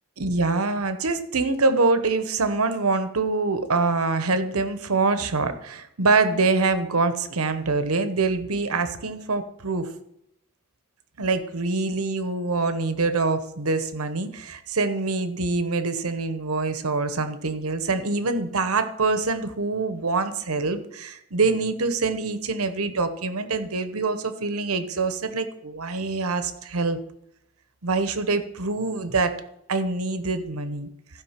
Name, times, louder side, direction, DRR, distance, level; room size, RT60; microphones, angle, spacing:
voice 1, 0.2-9.9 11.2-27.0 27.8-29.4 29.7-30.9, right 3 dB, 85° right, 10 dB, 1.0 m, -25 dB
15.5 x 5.3 x 5.9 m, 0.80 s
head